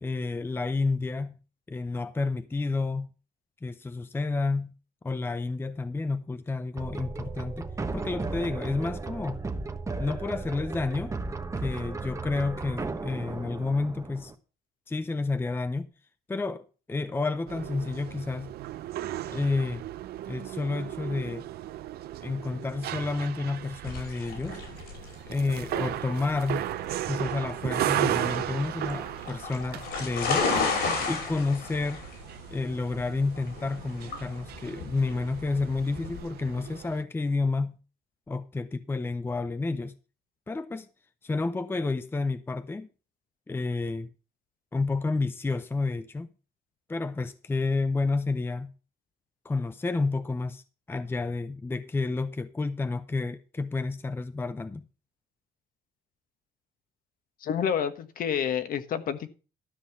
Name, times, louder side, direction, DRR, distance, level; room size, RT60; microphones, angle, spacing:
voice 1, 0.0-1.4 1.7-3.1 3.6-4.7 5.0-9.4 10.0-11.1 11.6-14.3 14.9-15.9 16.3-18.5 19.3-19.8 20.3-21.5 22.2-24.6 25.3-26.7 27.1-30.5 31.0-32.0 32.5-37.8 38.3-39.9 40.5-40.9 41.2-42.9 43.5-44.1 44.7-46.3 46.9-48.7 49.4-50.6 50.9-54.8, left 3 dB, 15° left, 0.6 m, -30 dB
sound 1, 6.8-14.3, right 3 dB, 20° right, 1.1 m, -35 dB
sound 2, 17.5-37.0, right 13 dB, 70° right, 0.8 m, -36 dB
sound 3, 23.8-36.2, left 4 dB, 75° left, 5.6 m, -33 dB
voice 2, 57.4-59.3, left 8 dB, 55° left, 1.4 m, -29 dB
13.0 x 5.6 x 6.9 m
cardioid pair, 110°, 17 cm